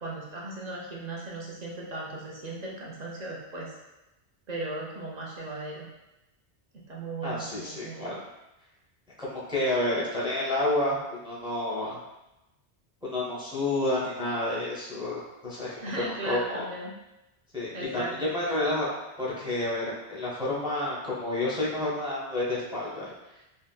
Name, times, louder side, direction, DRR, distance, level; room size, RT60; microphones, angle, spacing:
voice 1, 0.0-3.7 4.5-5.9 6.7-8.2 15.8-16.9 17.7-18.3, right 2 dB, 50° right, -4 dB, 0.6 m, -37 dB
voice 2, 7.2-8.1 9.2-12.0 13.0-16.6 17.5-18.9 19.2-23.1, left 1 dB, 5° right, -7 dB, 0.5 m, -30 dB
3.6 x 2.2 x 2.3 m, 0.96 s
omnidirectional pair, 1.1 m